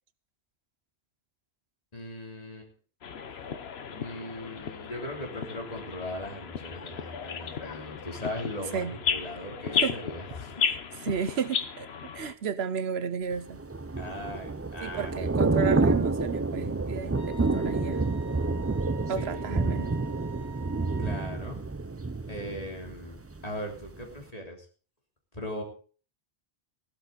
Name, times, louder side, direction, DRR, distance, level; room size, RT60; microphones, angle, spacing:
voice 1, 1.9-2.7 3.9-10.7 14.0-15.1 19.2-19.6 21.0-21.6 22.3-24.7 25.3-25.6, left 1 dB, 40° left, 3.1 m, -39 dB
sound 1, 3.0-12.3, left 7 dB, 80° left, 1.2 m, -34 dB
voice 2, 11.0-11.9 12.1-13.6 14.8-18.0 19.1-20.0, right 7 dB, 85° right, 1.1 m, -33 dB
Thunder / Rain, 13.5-23.4 23.8-24.0, right 3 dB, 25° right, 0.3 m, -28 dB
Wind instrument woodwind instrument, 17.1-21.4, right 3 dB, 45° right, 4.5 m, -47 dB
15.0 x 12.0 x 3.9 m
omnidirectional pair, 1.0 m